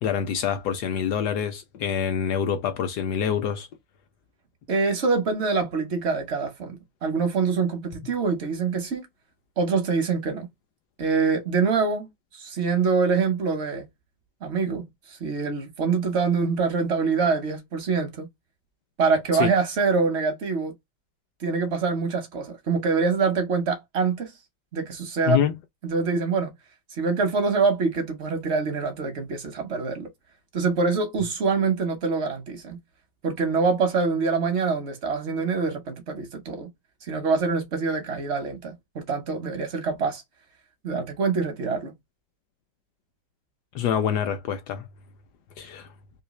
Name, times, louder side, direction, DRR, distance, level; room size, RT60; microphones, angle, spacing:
voice 1, 0.0-3.7 19.3-19.5 25.3-25.5 43.7-44.9 45.6-45.9, left 8 dB, 75° left, 1.0 m, -26 dB
voice 2, 4.7-6.8 7.0-9.1 9.6-10.5 11.0-13.9 14.4-18.3 19.0-20.7 21.4-24.3 24.7-25.4 25.8-26.5 27.0-30.1 30.5-32.8 33.2-36.7 37.0-40.2 40.8-41.9, right 4 dB, 65° right, 0.6 m, -25 dB
3.2 x 2.7 x 2.9 m
omnidirectional pair, 2.2 m